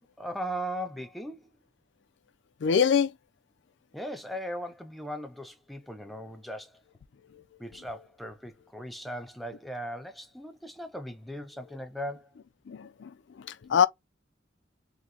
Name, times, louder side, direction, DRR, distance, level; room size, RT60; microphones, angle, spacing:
voice 1, 0.2-1.5 3.9-6.8 7.6-12.3, equal, ahead, 0.4 m, -38 dB
voice 2, 2.6-3.1 12.7-13.1 13.4-13.9, left 7 dB, 70° left, 0.4 m, -24 dB
3.8 x 2.1 x 2.8 m
head